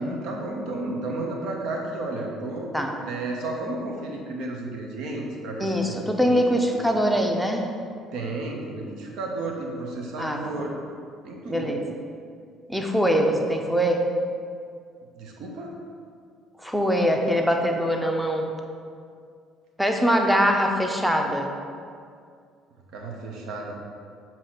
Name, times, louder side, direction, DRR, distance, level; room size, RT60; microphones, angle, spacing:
voice 1, 0.0-2.7 3.0-6.7 7.1-7.2 8.1-10.7 11.2-11.8 15.1-15.7 22.9-23.7, right 2 dB, 60° right, 0 dB, 0.9 m, -32 dB
voice 2, 5.6-7.7 10.2-10.4 11.5-11.8 12.7-14.0 16.6-18.5 19.8-21.5, equal, ahead, 2 dB, 0.7 m, -23 dB
7.2 x 3.0 x 4.6 m, 2.3 s
figure-of-eight pair, 55°, 0 cm